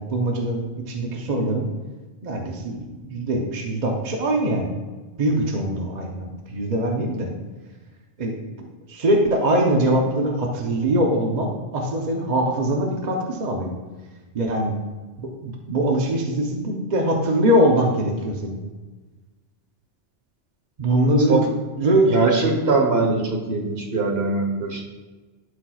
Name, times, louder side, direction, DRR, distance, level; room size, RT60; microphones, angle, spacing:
voice 1, 0.0-1.7 2.2-4.7 5.2-7.3 8.2-13.7 14.3-14.7 15.2-18.6 20.8-21.5 21.8-22.1, right 1 dB, 45° right, 1 dB, 0.8 m, -22 dB
voice 2, 22.1-24.8, right 3 dB, 60° right, 1 dB, 1.3 m, -21 dB
11.5 x 4.4 x 2.3 m, 1.3 s
omnidirectional pair, 1.2 m